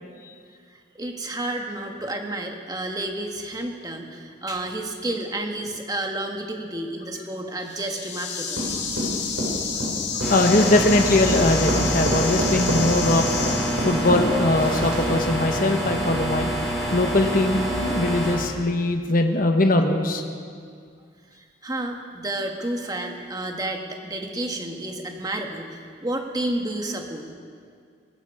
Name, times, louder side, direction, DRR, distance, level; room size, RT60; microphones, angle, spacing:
voice 1, 1.0-8.6 21.3-27.2, right 1 dB, 20° right, 3 dB, 1.4 m, -30 dB
sound 1, 7.6-14.3, left 6 dB, 65° left, 1.9 m, -30 dB
sound 2, 8.5-15.3, right 1 dB, 75° right, 5.3 m, -28 dB
sound 3, 10.2-18.3, right 1 dB, ahead, 4.8 m, -26 dB
voice 2, 10.3-13.3 13.8-16.5 16.9-20.2, left 2 dB, 45° left, 5 dB, 1.2 m, -21 dB
20.0 x 14.5 x 4.9 m, 2.1 s
head